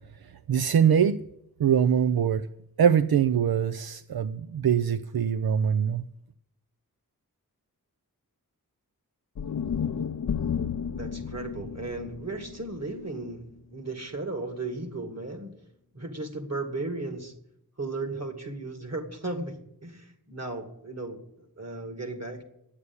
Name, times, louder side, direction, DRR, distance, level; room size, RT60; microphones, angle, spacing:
voice 1, 0.2-1.2 1.6-2.5 2.8-6.0, right 8 dB, 80° right, 0.5 m, -23 dB
sound 1, 9.3-13.6, left 7 dB, 55° left, 0.5 m, -33 dB
voice 2, 10.9-13.4 13.7-15.5 15.9-17.3 17.8-19.6 19.8-22.4, right 2 dB, 45° right, 2.2 m, -35 dB
9.7 x 8.3 x 9.6 m
wide cardioid pair, 65°, 36 cm